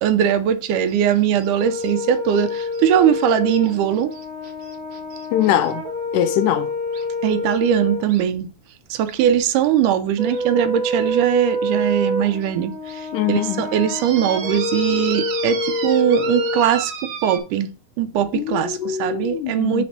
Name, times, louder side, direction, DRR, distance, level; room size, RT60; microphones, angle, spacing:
voice 1, 0.0-4.1 7.2-8.5 8.9-17.7 18.0-19.8, right 9 dB, 80° right, 2.1 m, -20 dB
sound 1, 0.7-5.7 6.9-7.0 8.1-8.2 9.1-9.2 9.6-9.7 10.3-10.4 11.1-11.2 11.8-11.9 12.4-12.5 12.9-13.0 13.9-17.4, right 6 dB, 60° right, 1.5 m, -34 dB
Brass instrument, 1.6-8.1 10.2-16.8, left 1 dB, 20° right, 1.2 m, -27 dB
voice 2, 5.3-5.8 6.1-6.7 13.1-13.7 18.3-19.8, left 11 dB, 80° left, 2.0 m, -22 dB
5.3 x 4.1 x 5.8 m
omnidirectional pair, 3.8 m